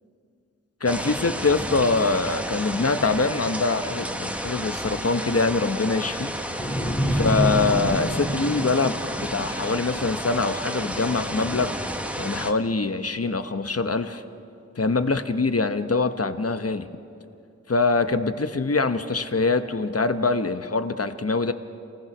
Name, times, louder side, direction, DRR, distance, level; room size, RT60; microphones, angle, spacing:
voice 1, 0.8-6.3 7.1-11.7 12.2-14.2 14.8-16.9 17.7-21.5, left 3 dB, 55° left, 9 dB, 1.1 m, -24 dB
sound 1, 0.9-12.5, equal, 5° right, 1.3 m, -31 dB
sound 2, 6.6-9.8, equal, 25° left, 2.0 m, -27 dB
28.0 x 19.0 x 6.1 m, 2.4 s
wide cardioid pair, 50°, 29 cm